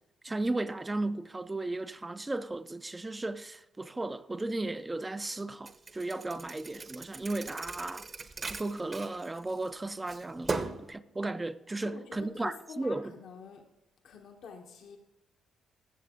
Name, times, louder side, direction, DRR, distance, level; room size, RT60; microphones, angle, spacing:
voice 1, 0.2-8.0 8.4-10.6 10.9-13.1, right 2 dB, 15° right, 0.5 m, -35 dB
Thump thud, 5.7-9.7 10.1-10.9, right 3 dB, 35° right, 0.9 m, -38 dB
voice 2, 11.8-13.6 14.0-15.0, left 6 dB, 70° left, 1.3 m, -47 dB
15.5 x 7.1 x 3.8 m
cardioid pair, 90°, 0 cm